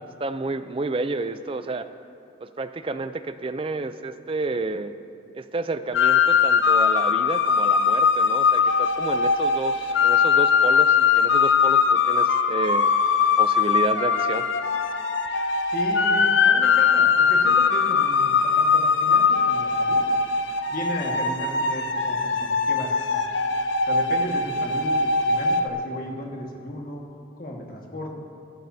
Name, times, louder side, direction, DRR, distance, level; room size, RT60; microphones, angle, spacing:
voice 1, 0.2-1.9 2.4-4.9 5.3-12.9 13.4-14.5, right 3 dB, 30° right, 11 dB, 0.4 m, -30 dB
sound 1, 5.9-25.7, left 5 dB, 80° left, 0.7 m, -21 dB
voice 2, 15.7-20.0 20.7-23.2 23.8-27.0 27.4-28.1, left 1 dB, 50° left, 0 dB, 1.7 m, -35 dB
23.0 x 12.0 x 2.8 m, 2.5 s
head